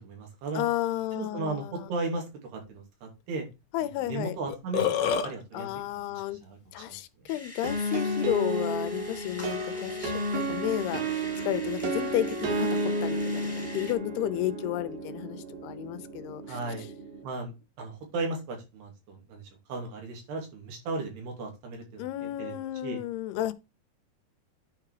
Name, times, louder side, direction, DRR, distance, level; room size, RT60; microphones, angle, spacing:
voice 1, 0.0-0.7 1.1-2.2 2.5-3.5 3.8-4.9 5.2-5.7 6.1-7.3 16.5-16.9 17.2-17.5 17.8-23.0, right 3 dB, 90° right, 4.8 m, -36 dB
voice 2, 0.6-1.9 3.7-4.4 5.5-6.4 6.7-12.7 13.0-16.6 22.0-23.5, left 14 dB, 85° left, 2.8 m, -32 dB
Burping eructation, 4.1-4.2 4.5-5.3, left 8 dB, 65° left, 2.0 m, -26 dB
sound 1, 7.3-13.9, left 1 dB, 5° left, 1.2 m, -45 dB
sound 2, 7.6-17.2, right 1 dB, 65° right, 3.7 m, -32 dB
10.0 x 4.8 x 4.9 m
omnidirectional pair, 4.5 m